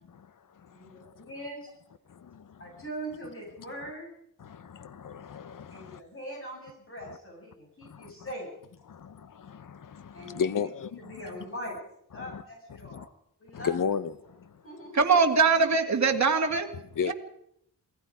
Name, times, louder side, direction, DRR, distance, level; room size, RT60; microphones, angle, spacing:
voice 1, 0.7-1.7 2.6-4.1 5.7-8.5 10.1-10.7 11.0-11.8 12.1-13.1 13.4-13.7 14.6-15.2, right 1 dB, 35° left, 7.7 m, -41 dB
voice 2, 2.1-2.6 4.4-6.0 7.1-7.2 7.8-8.1 8.9-11.2 12.1-12.4 12.9-13.1 13.5-14.5 17.0-17.1, left 7 dB, 65° left, 1.0 m, -34 dB
voice 3, 14.9-16.7 17.1-17.2, right 5 dB, 50° right, 2.2 m, -22 dB
28.0 x 18.5 x 5.0 m
wide cardioid pair, 145°, 35 cm